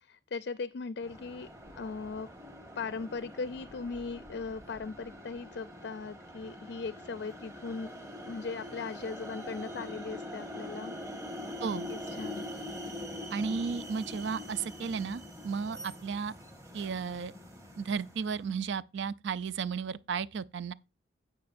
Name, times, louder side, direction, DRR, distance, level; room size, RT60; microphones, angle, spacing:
voice 1, 0.1-1.5 1.8-2.3 2.8-7.9 8.3-10.9 11.9-12.4, left 4 dB, 60° left, 0.4 m, -38 dB
sound 1, 1.0-18.5, left 1 dB, 15° right, 1.4 m, -44 dB
voice 2, 13.3-16.3 16.7-17.3 17.8-20.7, right 6 dB, 70° right, 0.4 m, -34 dB
16.5 x 5.6 x 2.6 m
head